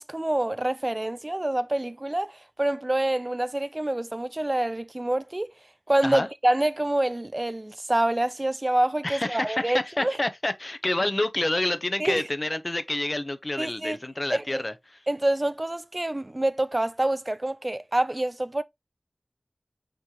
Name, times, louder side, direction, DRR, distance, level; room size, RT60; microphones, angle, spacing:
voice 1, 0.0-5.5 5.9-10.2 12.0-12.3 13.6-14.0 14.3-14.6 15.1-18.6, right 1 dB, 35° right, 0.3 m, -26 dB
voice 2, 9.0-14.7, left 1 dB, 45° left, 0.7 m, -28 dB
5.9 x 3.1 x 2.9 m
wide cardioid pair, 45°, 0 cm